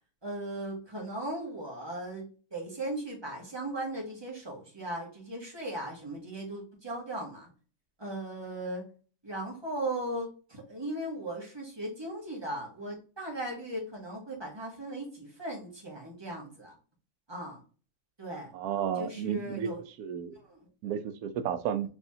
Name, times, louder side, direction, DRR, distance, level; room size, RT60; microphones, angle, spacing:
voice 1, 0.2-2.2 2.5-7.5 8.0-8.8 9.2-16.7 17.3-17.6 18.2-18.5 18.9-19.8 20.3-20.7, right 1 dB, 20° right, -2 dB, 1.6 m, -37 dB
voice 2, 18.5-19.7 20.0-20.4 20.8-21.9, right 8 dB, 90° right, 10 dB, 1.1 m, -32 dB
4.7 x 3.5 x 2.7 m, 0.37 s
omnidirectional pair, 1.5 m